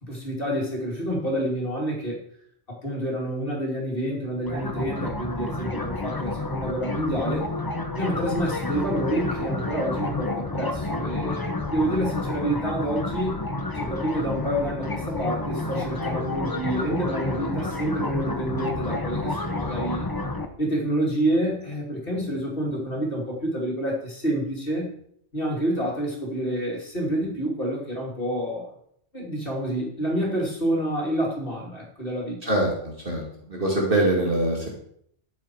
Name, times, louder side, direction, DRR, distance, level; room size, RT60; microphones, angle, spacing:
voice 1, 0.0-2.2 2.7-7.4 8.0-13.4 13.8-20.1 20.6-24.9 25.3-28.7 29.1-32.4, right 1 dB, 50° left, -2 dB, 3.0 m, -28 dB
sound 1, 4.4-20.5, left 2 dB, 20° left, 0.9 m, -30 dB
voice 2, 32.4-33.2 33.5-34.7, right 1 dB, 45° right, -2 dB, 2.4 m, -23 dB
13.5 x 7.5 x 4.7 m, 0.68 s
omnidirectional pair, 1.3 m